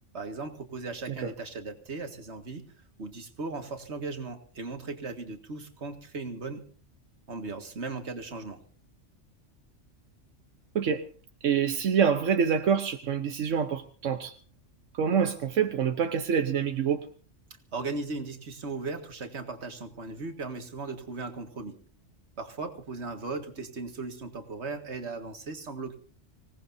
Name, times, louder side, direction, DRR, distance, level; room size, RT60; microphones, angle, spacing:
voice 1, 0.1-2.6 3.0-6.6 7.3-8.6 17.7-21.8 22.4-26.0, right 3 dB, 65° right, 6 dB, 2.1 m, -37 dB
voice 2, 11.4-14.3 14.9-17.0, right 7 dB, 85° right, 7 dB, 1.3 m, -26 dB
25.5 x 18.0 x 2.7 m, 0.42 s
omnidirectional pair, 1.3 m